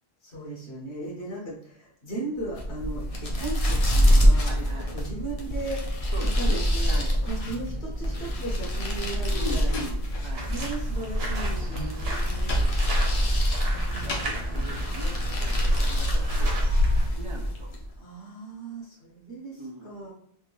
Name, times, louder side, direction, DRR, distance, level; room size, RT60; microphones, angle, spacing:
voice 1, 0.2-4.6 4.9-5.9 6.2-7.0 7.3-9.7 10.5-12.7 13.7-14.7 18.0-20.1, right 2 dB, 90° left, -3 dB, 1.4 m, -37 dB
sound 1, 2.4-17.9, equal, 40° left, 0.6 m, -26 dB
voice 2, 4.4-5.0 6.1-7.2 9.3-10.5 12.5-13.2 13.9-17.7 19.6-19.9, right 1 dB, 40° right, 0 dB, 0.4 m, -41 dB
Slam, 9.1-10.8 11.0-14.5, equal, 75° left, 1.0 m, -33 dB
sound 2, 10.3-17.1, equal, 70° right, 1.2 m, -28 dB
3.5 x 2.5 x 3.0 m, 0.67 s
omnidirectional pair, 1.1 m